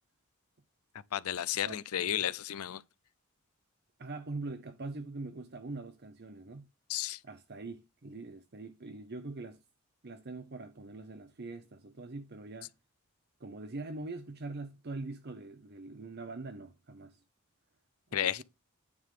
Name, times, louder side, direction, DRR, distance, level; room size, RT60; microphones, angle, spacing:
voice 1, 1.1-2.8 6.9-7.2 18.1-18.4, left 10 dB, 75° left, 0.5 m, -32 dB
voice 2, 4.0-6.7 7.2-9.6 10.0-12.7 13.4-17.2 18.1-18.4, right 3 dB, 45° right, 0.7 m, -43 dB
9.6 x 3.7 x 6.6 m
head